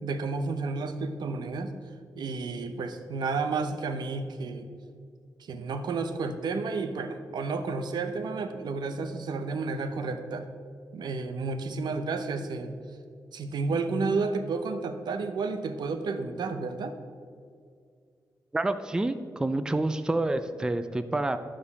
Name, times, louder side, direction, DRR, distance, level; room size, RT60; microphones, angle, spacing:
voice 1, 0.0-1.7 2.1-4.7 5.4-10.5 10.9-12.7 13.3-16.9, right 4 dB, 90° right, 8 dB, 0.8 m, -31 dB
voice 2, 18.5-21.4, right 2 dB, 10° right, 10 dB, 0.4 m, -28 dB
11.5 x 5.1 x 7.0 m, 2.2 s
wide cardioid pair, 175°, 7 cm